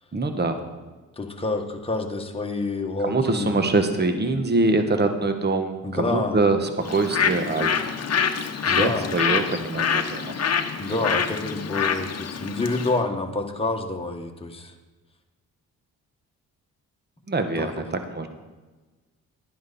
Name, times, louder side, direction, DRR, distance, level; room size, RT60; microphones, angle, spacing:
voice 1, 0.1-0.6 3.0-7.9 8.6-10.3 17.3-18.3, right 3 dB, 30° right, 7 dB, 1.3 m, -24 dB
voice 2, 1.2-3.6 5.8-6.4 8.7-9.1 10.8-14.7 17.6-17.7, left 3 dB, 15° left, 2 dB, 1.6 m, -28 dB
Bird, 6.8-13.0, left 7 dB, 45° left, 1.0 m, -26 dB
11.5 x 10.0 x 4.3 m, 1.2 s
supercardioid pair, 60°, 35 cm